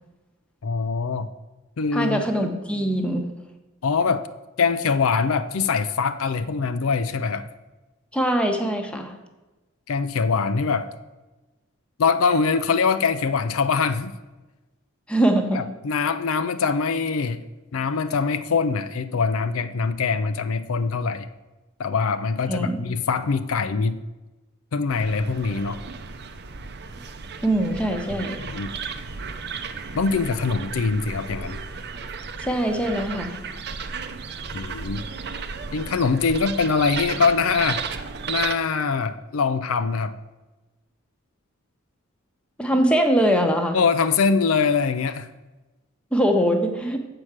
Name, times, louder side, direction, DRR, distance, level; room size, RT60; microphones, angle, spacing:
voice 1, 0.6-1.3 1.8-2.2 3.8-4.3 4.6-7.5 9.9-10.9 12.0-14.1 15.5-17.4 17.7-21.3 21.8-24.0 24.7-25.8 28.2-28.7 29.9-31.6 34.5-35.0 35.7-37.8 38.3-40.2 43.7-45.3, left 5 dB, 75° left, 11 dB, 0.5 m, -23 dB
voice 2, 1.9-3.3 8.1-9.1 15.1-15.6 22.5-22.8 27.4-28.4 32.4-33.4 42.6-43.8 46.1-47.0, right 1 dB, 5° left, 4 dB, 0.9 m, -22 dB
sound 1, 24.9-38.5, right 5 dB, 55° right, 0.7 m, -34 dB
7.7 x 4.8 x 7.2 m, 1.1 s
head